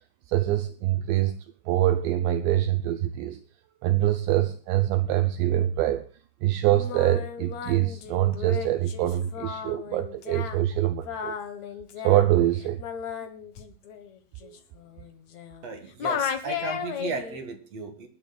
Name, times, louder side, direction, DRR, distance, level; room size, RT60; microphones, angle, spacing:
voice 1, 0.3-1.3 1.7-3.4 3.8-6.0 6.4-11.4 12.0-12.8 14.4-14.6, right 13 dB, 75° right, 2.9 m, -24 dB
Singing, 6.7-15.7 16.0-17.4, left 7 dB, 70° left, 1.7 m, -35 dB
voice 2, 15.6-18.1, right 4 dB, 50° right, 2.1 m, -35 dB
24.5 x 11.5 x 2.4 m
omnidirectional pair, 5.4 m